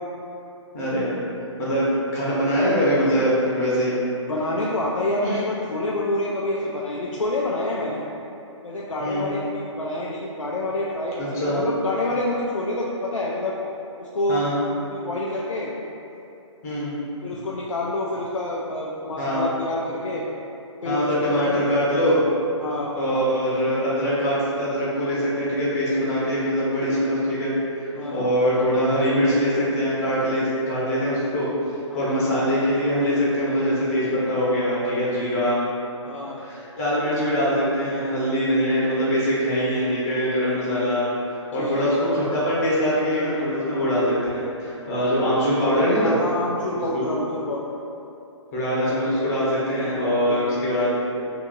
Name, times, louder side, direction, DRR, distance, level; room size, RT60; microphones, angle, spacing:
voice 1, 0.7-1.2 1.6-3.9 5.2-5.4 9.0-9.3 11.2-11.6 14.3-14.6 16.6-16.9 19.2-19.5 20.8-22.2 22.9-31.5 31.9-35.6 36.4-46.2 46.9-47.1 48.5-50.9, equal, 30° left, -8 dB, 0.8 m, -23 dB
voice 2, 4.3-8.0 8.6-13.5 14.0-14.4 14.9-15.7 17.2-20.2 20.8-21.6 22.6-22.9 27.9-28.3 31.9-32.2 36.0-36.4 41.5-42.0 46.0-47.7 50.3-50.6, left 1 dB, 85° left, -4 dB, 0.4 m, -27 dB
2.8 x 2.6 x 3.7 m, 2.8 s
figure-of-eight pair, 135°, 16 cm